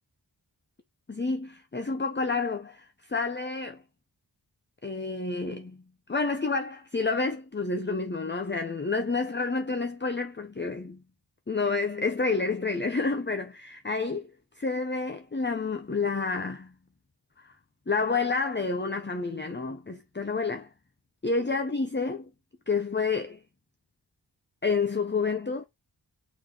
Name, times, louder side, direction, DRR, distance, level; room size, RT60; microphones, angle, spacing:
voice 1, 1.1-3.8 4.8-5.8 6.1-11.0 11.5-14.3 14.6-16.7 17.4-17.5 17.9-20.7 21.2-22.3 22.7-23.4 24.6-25.6, left 4 dB, 25° left, 0.9 m, -29 dB
6.4 x 4.1 x 4.9 m
cardioid pair, 45°, 43 cm